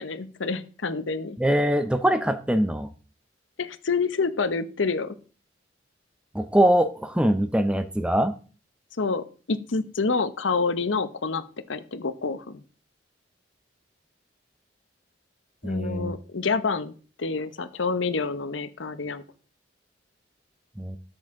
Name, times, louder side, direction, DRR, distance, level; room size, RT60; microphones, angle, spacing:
voice 1, 0.0-1.4 3.6-5.1 9.0-12.6 15.6-16.9 17.2-19.2, left 4 dB, 85° left, 12 dB, 0.8 m, -28 dB
voice 2, 1.4-2.9 6.3-8.3 15.6-16.1 20.8-21.0, right 1 dB, 5° right, 10 dB, 0.5 m, -23 dB
13.0 x 6.5 x 3.7 m, 0.38 s
head